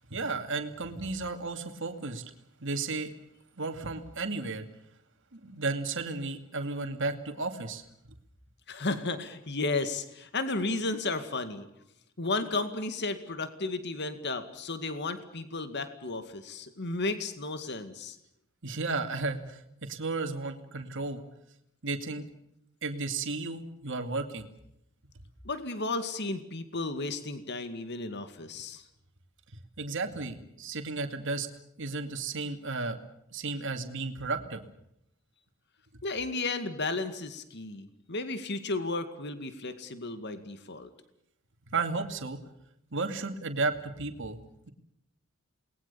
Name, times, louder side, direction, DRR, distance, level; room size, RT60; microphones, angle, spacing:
voice 1, 0.1-2.2 2.6-3.1 3.6-4.6 5.3-7.8 18.6-21.2 21.8-22.3 22.8-24.4 29.8-31.5 31.8-33.0 33.3-34.6 41.7-42.4 42.9-44.4, right 3 dB, 65° right, 6 dB, 2.5 m, -33 dB
voice 2, 8.7-11.7 12.2-18.2 25.4-28.8 36.0-40.9, left 3 dB, 55° left, 10 dB, 2.2 m, -33 dB
28.5 x 20.5 x 7.0 m, 0.77 s
head